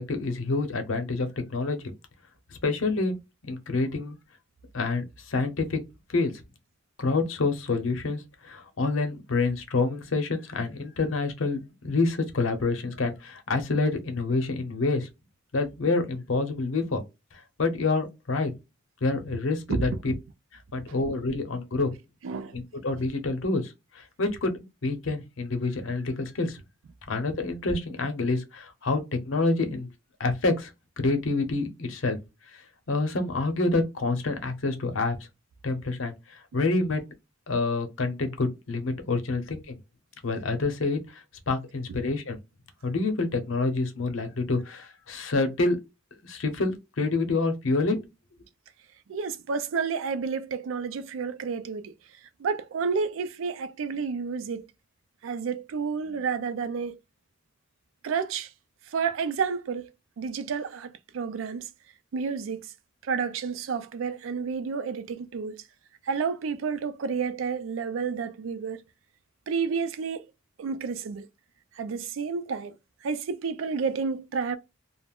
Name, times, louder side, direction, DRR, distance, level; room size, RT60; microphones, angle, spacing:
voice 1, 0.0-1.8 2.6-3.2 3.4-4.2 4.7-5.8 6.1-6.3 7.0-15.1 15.5-17.0 17.3-18.5 19.0-20.1 20.7-21.9 22.5-26.6 27.1-29.0 29.3-29.9 30.2-30.7 31.0-32.2 32.5-35.2 35.6-37.0 37.5-39.8 40.2-42.4 42.8-45.8 46.2-48.0, left 3 dB, 90° left, 0.7 m, -27 dB
voice 2, 19.7-20.2 21.3-21.4 22.2-22.6 49.1-51.9 52.4-54.7 55.2-57.0 58.0-58.5 58.9-59.9 60.2-61.7 62.1-62.7 63.0-65.5 66.0-68.8 69.5-70.2 70.6-71.3 71.8-72.8 73.0-74.6, right 5 dB, 85° right, 0.4 m, -30 dB
2.3 x 2.0 x 3.4 m
head